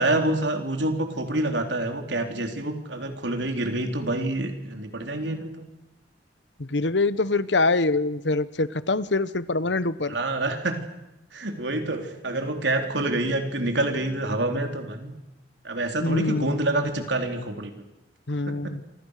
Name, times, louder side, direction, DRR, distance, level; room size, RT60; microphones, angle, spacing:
voice 1, 0.0-5.7 10.1-10.8 11.3-15.1 15.6-17.7 18.5-18.7, right 2 dB, 85° right, 5 dB, 4.0 m, -27 dB
voice 2, 6.6-10.1 16.0-16.6 18.3-18.8, left 3 dB, 85° left, 16 dB, 1.2 m, -24 dB
28.0 x 26.0 x 6.7 m, 0.95 s
head